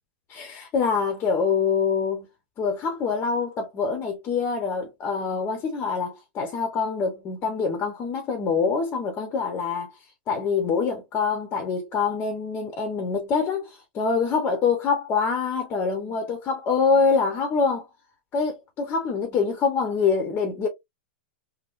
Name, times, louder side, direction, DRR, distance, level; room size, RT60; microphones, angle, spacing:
voice 1, 0.3-2.3 2.6-9.9 10.3-17.8 18.3-20.7, left 5 dB, 35° left, 0.9 m, -25 dB
3.6 x 2.1 x 2.5 m
hypercardioid pair, 110°, 6 cm